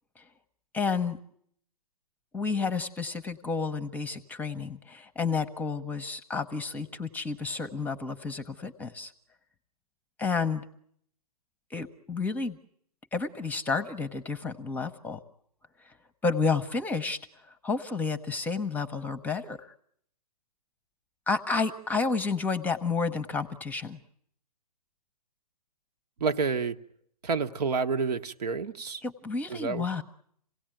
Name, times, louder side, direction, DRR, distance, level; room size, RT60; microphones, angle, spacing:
voice 1, 0.7-1.2 2.3-9.1 10.2-10.6 11.7-12.6 13.1-15.2 15.8-15.9 16.2-17.2 17.6-19.6 21.3-24.0 29.0-30.0, left 4 dB, 10° left, 0.9 m, -30 dB
voice 2, 26.2-26.8 27.2-29.0 29.5-30.0, right 5 dB, 70° right, 1.2 m, -29 dB
27.0 x 17.5 x 9.1 m
hypercardioid pair, 130°, 21 cm